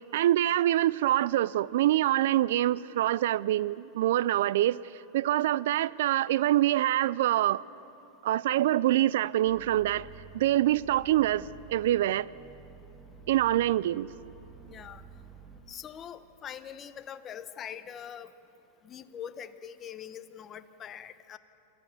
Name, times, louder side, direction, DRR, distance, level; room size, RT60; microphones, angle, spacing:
voice 1, 0.1-4.8 5.1-7.6 8.2-10.1 10.3-12.3 13.3-14.1, right 13 dB, 75° right, 20 dB, 0.3 m, -25 dB
sound 1, 9.5-15.6, right 6 dB, 20° right, 2.5 m, -50 dB
voice 2, 14.7-15.0 15.7-18.3 18.8-21.4, left 9 dB, 30° left, 11 dB, 0.9 m, -43 dB
27.0 x 14.0 x 7.1 m, 2.9 s
supercardioid pair, 130°, 0 cm